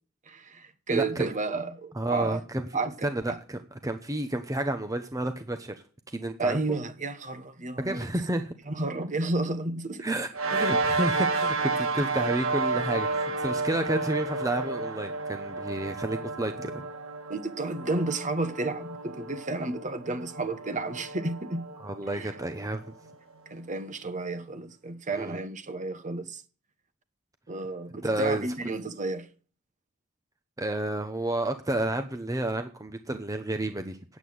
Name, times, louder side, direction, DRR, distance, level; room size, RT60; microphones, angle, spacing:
voice 1, 0.3-2.4 2.7-3.4 6.4-8.1 8.7-10.1 17.3-21.7 22.2-22.3 23.5-26.4 27.5-29.3, right 3 dB, 35° right, 1.2 m, -32 dB
voice 2, 0.9-1.3 1.9-2.6 3.0-5.7 6.1-6.6 7.8-8.5 10.0-16.9 21.8-22.8 25.1-25.4 28.0-28.5 30.6-34.0, right 1 dB, 15° right, 0.9 m, -30 dB
sound 1, 10.3-23.1, right 3 dB, 70° right, 1.7 m, -31 dB
9.2 x 8.3 x 7.7 m
head